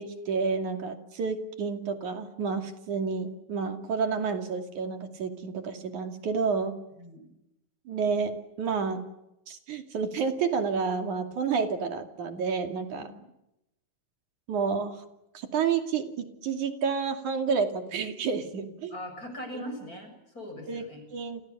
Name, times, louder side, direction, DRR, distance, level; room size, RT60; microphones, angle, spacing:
voice 1, 0.0-6.8 7.9-9.0 9.5-13.1 14.5-15.0 15.3-18.9 19.5-19.6 20.7-20.9 21.1-21.4, right 5 dB, 55° right, 6 dB, 3.7 m, -30 dB
voice 2, 7.0-7.3 13.0-13.2 18.9-21.0, equal, 20° left, 6 dB, 7.4 m, -41 dB
29.5 x 28.5 x 6.9 m, 0.87 s
omnidirectional pair, 4.6 m